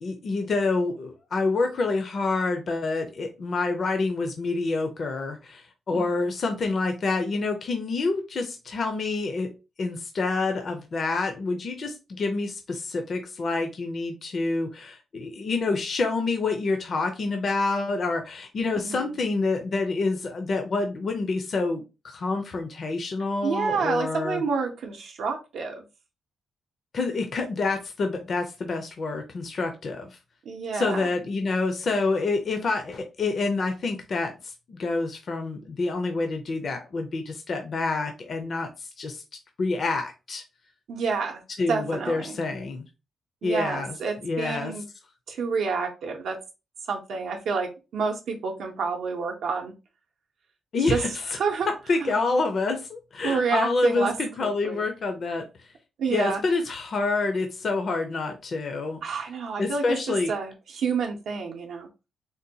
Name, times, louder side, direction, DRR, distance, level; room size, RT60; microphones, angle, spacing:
voice 1, 0.0-9.5 9.8-24.4 26.9-30.2 30.7-39.2 39.6-40.4 41.6-42.8 43.4-43.9 44.2-44.7 50.7-51.1 51.9-55.4 56.1-59.0 59.6-60.3, left 3 dB, 40° left, 5 dB, 0.5 m, -27 dB
voice 2, 23.4-25.8 30.5-31.1 40.9-41.4 41.7-42.4 43.4-44.8 45.3-46.4 46.9-49.7 50.9-51.0 51.4-51.7 52.0-52.2 53.2-54.1 54.4-54.9 56.0-56.4 59.0-61.9, right 5 dB, 70° right, 2 dB, 0.6 m, -29 dB
3.8 x 2.2 x 2.7 m, 0.28 s
wide cardioid pair, 155°, 0 cm